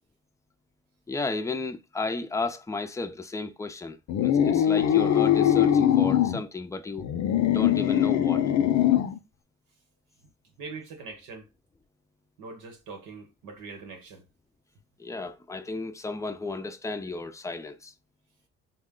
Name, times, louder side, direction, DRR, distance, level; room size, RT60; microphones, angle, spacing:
voice 1, 1.1-7.0 7.5-8.4 15.0-17.9, left 3 dB, 10° left, 0.5 m, -33 dB
sound 1, 4.1-6.4 7.0-9.2, left 10 dB, 65° left, 0.6 m, -22 dB
voice 2, 10.6-11.5 12.4-14.3, right 4 dB, 90° right, 1.2 m, -42 dB
4.1 x 2.1 x 3.7 m
cardioid pair, 90°, 30 cm